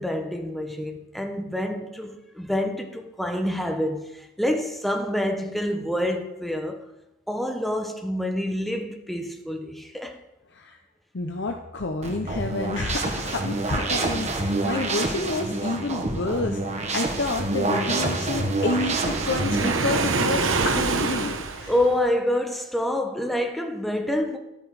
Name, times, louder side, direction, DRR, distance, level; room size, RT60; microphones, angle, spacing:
voice 1, 0.0-6.8 7.3-10.2 21.7-24.4, left 1 dB, ahead, 1.0 m, -27 dB
voice 2, 11.1-21.7, left 3 dB, 60° left, 0.7 m, -29 dB
sound 1, 12.0-20.0, right 2 dB, 35° right, 1.4 m, -27 dB
Waves surf, 18.6-22.1, right 4 dB, 80° right, 1.0 m, -26 dB
12.0 x 8.2 x 4.8 m
head